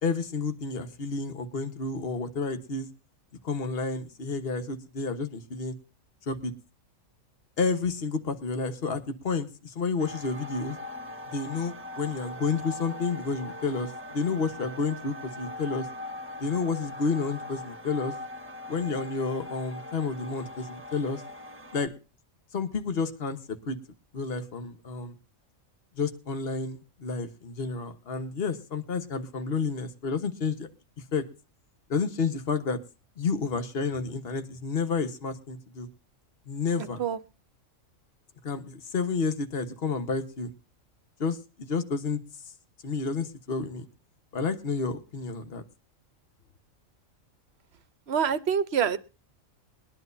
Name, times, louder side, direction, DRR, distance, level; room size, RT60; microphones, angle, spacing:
voice 1, 0.0-2.9 3.4-5.7 6.3-6.5 7.6-10.8 11.3-15.9 16.4-18.1 18.7-21.2 21.7-21.9 22.5-23.8 24.1-25.2 26.0-30.7 31.1-31.2 31.9-32.8 33.2-35.9 36.5-37.0 38.4-40.5 41.2-42.2 42.8-43.9 44.3-45.6, left 4 dB, 50° left, 1.4 m, -30 dB
sound 1, 10.0-21.9, left 2 dB, 10° right, 1.4 m, -41 dB
voice 2, 36.8-37.2 48.1-49.0, right 7 dB, 55° right, 1.0 m, -26 dB
22.0 x 10.5 x 2.6 m
omnidirectional pair, 1.4 m